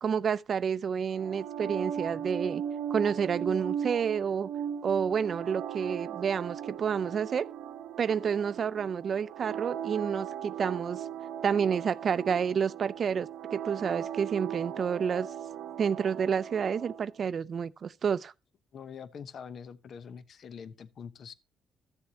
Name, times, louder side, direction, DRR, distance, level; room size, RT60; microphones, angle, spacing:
voice 1, 0.0-2.6 2.9-4.5 4.8-7.5 8.0-11.0 11.4-15.3 15.8-18.3, right 7 dB, 50° right, 0.5 m, -29 dB
sound 1, 1.1-17.1, right 9 dB, 90° right, 0.9 m, -38 dB
voice 2, 18.7-21.3, left 7 dB, 60° left, 0.8 m, -44 dB
14.0 x 7.1 x 2.8 m
cardioid pair, 90°, 0 cm